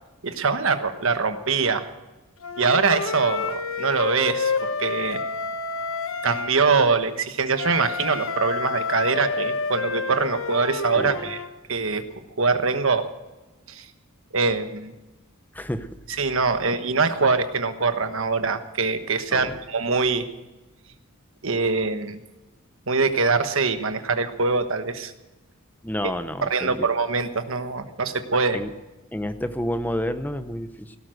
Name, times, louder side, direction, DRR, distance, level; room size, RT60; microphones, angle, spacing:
voice 1, 0.2-1.9 2.6-5.3 6.2-11.4 11.7-12.0 12.4-13.1 13.7-13.9 14.3-14.9 16.2-20.2 21.4-22.2 22.9-25.1 26.0-26.1 26.4-28.6, right 4 dB, 65° right, 9 dB, 1.3 m, -23 dB
Wind instrument woodwind instrument, 2.4-6.6 7.6-11.5, left 4 dB, 65° left, 1.1 m, -29 dB
voice 2, 15.5-15.9 19.3-19.6 25.8-26.9 28.5-28.7 29.1-31.0, equal, 10° left, 10 dB, 0.8 m, -29 dB
17.5 x 12.5 x 6.4 m, 1.1 s
head